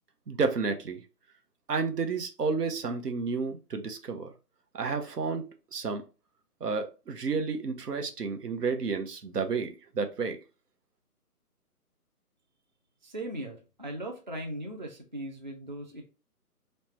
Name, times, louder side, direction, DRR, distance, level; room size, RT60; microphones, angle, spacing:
voice 1, 0.3-1.0 1.7-4.3 4.7-5.4 5.7-6.0 6.6-10.4, right 4 dB, 90° right, 6 dB, 0.8 m, -31 dB
voice 2, 13.0-16.0, right 1 dB, 35° right, 2 dB, 0.4 m, -38 dB
3.2 x 2.1 x 4.2 m, 0.31 s
figure-of-eight pair, 150°, 46 cm